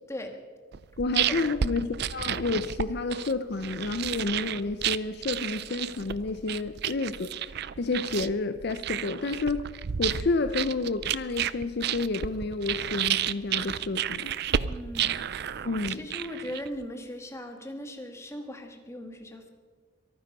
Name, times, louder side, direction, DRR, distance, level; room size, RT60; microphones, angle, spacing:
sound 1, 0.7-16.8, right 9 dB, 55° right, 0.4 m, -31 dB
voice 1, 1.0-7.3 7.8-9.7 10.0-14.3 15.6-16.0, left 3 dB, 55° left, 10 dB, 0.6 m, -30 dB
voice 2, 14.6-15.2 15.6-19.5, equal, 15° left, 5 dB, 1.5 m, -39 dB
23.5 x 9.6 x 5.4 m, 1.5 s
head